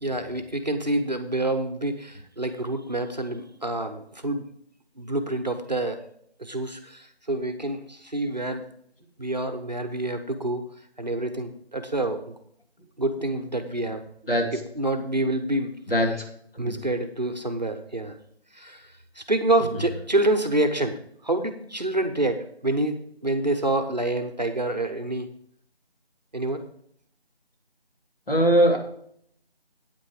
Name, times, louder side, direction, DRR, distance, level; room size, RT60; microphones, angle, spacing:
voice 1, 0.0-4.5 5.0-6.0 6.4-8.7 9.2-10.6 11.0-12.3 13.0-14.0 14.5-15.8 16.6-18.2 18.5-25.3 26.3-26.7, right 1 dB, 40° right, 7 dB, 1.0 m, -27 dB
voice 2, 28.3-28.8, equal, 60° left, 1 dB, 3.0 m, -20 dB
9.1 x 8.9 x 4.8 m, 0.66 s
figure-of-eight pair, 180°, 32 cm